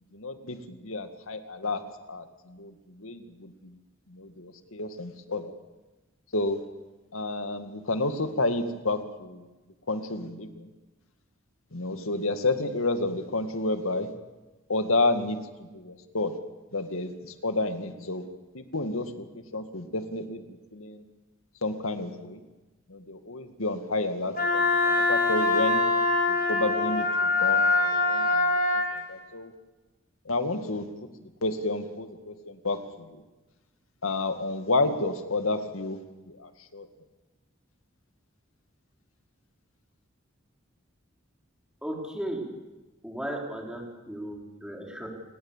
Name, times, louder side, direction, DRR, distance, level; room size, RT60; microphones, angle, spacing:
voice 1, 0.1-1.8 2.1-3.8 4.1-5.5 6.3-6.6 7.1-9.5 9.9-10.7 11.7-14.1 14.7-16.4 16.7-18.3 18.5-21.0 21.6-22.4 22.9-25.8 26.3-28.6 28.9-29.5 30.3-31.1 31.4-33.2 34.0-36.0 36.3-36.9, left 2 dB, 90° left, 8 dB, 2.1 m, -30 dB
Wind instrument woodwind instrument, 24.4-28.9, left 3 dB, 45° left, 5.2 m, -23 dB
voice 2, 41.8-42.4 43.0-45.1, right 1 dB, 5° right, 0 dB, 4.7 m, -35 dB
29.0 x 19.5 x 7.5 m, 1.2 s
head